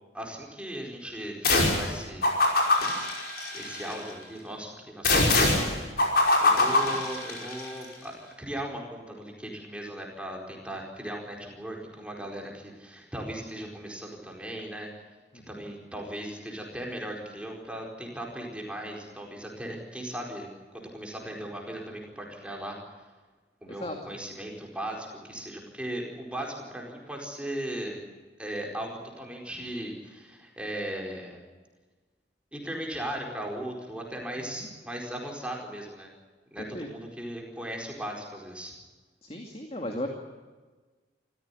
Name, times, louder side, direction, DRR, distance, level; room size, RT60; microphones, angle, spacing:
voice 1, 0.1-2.3 3.5-5.7 6.4-14.9 15.5-22.8 23.6-28.0 28.4-31.4 32.5-36.1 36.5-38.7, right 1 dB, 5° right, 0 dB, 4.6 m, -37 dB
sound 1, 1.4-1.9 2.2-4.0 5.0-7.6, left 2 dB, 55° left, 5.2 m, -23 dB
voice 2, 34.4-34.7 36.6-36.9 39.2-40.1, left 1 dB, 35° left, 2 dB, 2.4 m, -36 dB
26.0 x 15.5 x 9.8 m, 1.3 s
head